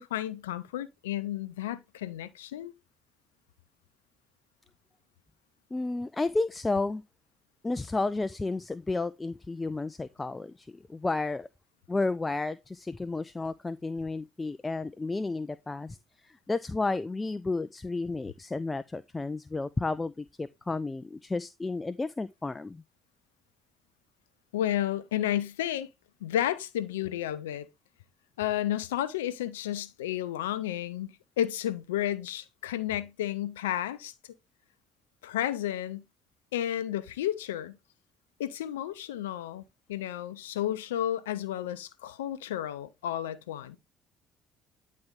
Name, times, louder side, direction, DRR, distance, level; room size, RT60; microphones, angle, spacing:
voice 1, 0.0-2.7 24.5-25.9 26.2-27.7 28.4-34.1 35.2-36.0 36.5-37.7 38.4-39.6 39.9-43.8, left 12 dB, 85° left, 0.6 m, -32 dB
voice 2, 5.7-7.0 7.6-11.5 11.9-16.0 16.2-22.8, left 3 dB, 20° left, 0.4 m, -32 dB
9.6 x 4.2 x 3.6 m
hypercardioid pair, 55°, 0 cm